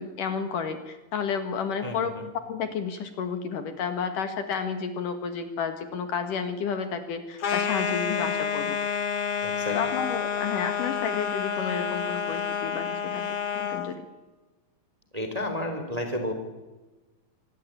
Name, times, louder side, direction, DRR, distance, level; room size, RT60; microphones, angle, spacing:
voice 1, 0.0-2.1 2.5-8.8 9.7-13.2 13.5-14.1, left 6 dB, 60° left, 8 dB, 3.0 m, -31 dB
voice 2, 1.8-2.3 9.4-9.8 15.1-16.3, left 1 dB, 10° right, 6 dB, 3.0 m, -31 dB
sound 1, 7.4-13.9, left 7 dB, 45° left, 2.5 m, -29 dB
25.5 x 19.5 x 8.9 m, 1.1 s
omnidirectional pair, 4.5 m